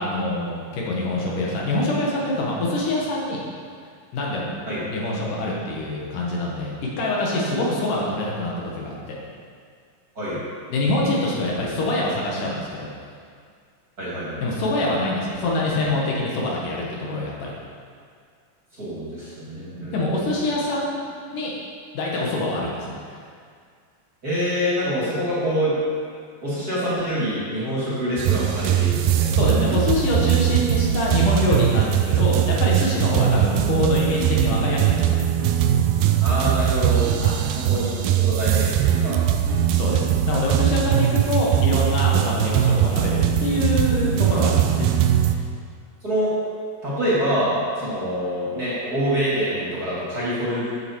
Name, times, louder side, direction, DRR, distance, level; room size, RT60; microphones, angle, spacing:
voice 1, 0.0-3.4 4.1-4.5 4.9-9.2 10.7-12.9 14.4-17.5 19.9-21.0 21.3-21.5 21.9-23.0 29.3-35.3 37.2-37.4 39.7-44.9, left 2 dB, 70° left, -4 dB, 3.0 m, -25 dB
voice 2, 14.0-14.4 18.7-20.3 24.2-25.8 26.4-29.4 36.2-37.1 37.5-39.2 40.9-41.0 46.0-46.3 46.8-50.7, equal, 25° right, -9 dB, 3.0 m, -26 dB
sound 1, 28.2-45.4, right 10 dB, 90° right, 2.4 m, -20 dB
13.0 x 7.5 x 4.8 m, 2.1 s
omnidirectional pair, 4.1 m